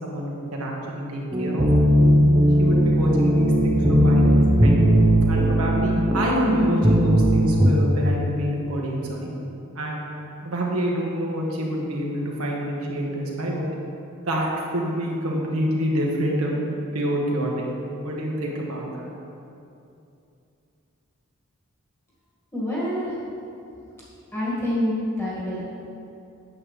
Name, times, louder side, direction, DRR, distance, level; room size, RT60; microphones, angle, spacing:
voice 1, 0.0-1.7 2.6-4.8 5.3-9.3 9.7-10.0 10.4-13.7 14.2-17.7 18.0-19.1, equal, 85° right, -2 dB, 1.5 m, -27 dB
sound 1, 1.3-7.7, equal, 20° right, 0.7 m, -18 dB
voice 2, 22.5-23.1 24.3-25.6, left 1 dB, 10° left, -8 dB, 2.0 m, -26 dB
8.6 x 7.6 x 3.4 m, 2.7 s
head